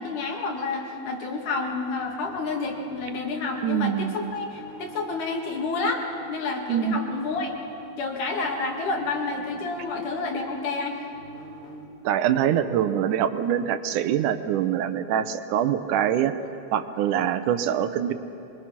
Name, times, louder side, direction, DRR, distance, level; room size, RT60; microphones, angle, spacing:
voice 1, 0.0-6.0 6.3-7.5 8.0-11.0, left 3 dB, 80° left, 1 dB, 3.6 m, -29 dB
sound 1, 1.5-6.3 7.0-11.8, equal, 50° left, 3.4 m, -48 dB
voice 2, 3.6-4.2 6.7-7.0 12.0-16.3 16.7-18.1, right 10 dB, 80° right, 11 dB, 2.3 m, -24 dB
24.0 x 22.5 x 5.9 m, 2.8 s
omnidirectional pair, 3.6 m